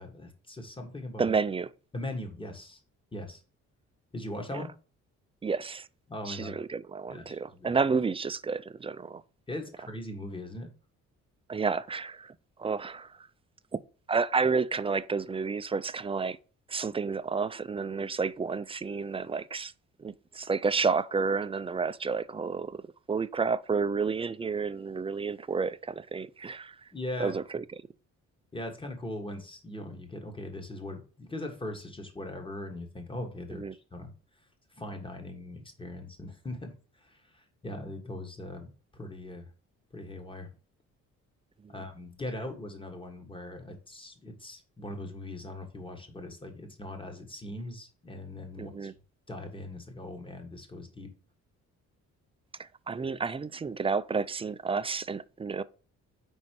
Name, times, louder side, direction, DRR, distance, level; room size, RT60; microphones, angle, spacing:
voice 1, 0.0-1.3 1.9-2.8 3.1-3.4 4.1-4.7 6.1-6.6 7.1-7.7 9.5-10.7 26.9-27.4 28.5-34.1 34.8-39.5 39.9-40.5 41.7-48.9 49.3-51.1, left 1 dB, 15° left, 1.7 m, -40 dB
voice 2, 1.2-1.7 4.5-4.6 5.4-5.9 6.3-9.2 11.5-13.3 13.7-13.8 14.1-16.4 16.7-19.7 20.0-22.8 23.1-26.9 27.2-27.6 33.5-33.7 41.6-41.8 48.6-48.9 52.6-55.6, right 5 dB, 20° right, 0.3 m, -30 dB
5.3 x 4.2 x 4.6 m
cardioid pair, 90°, 30 cm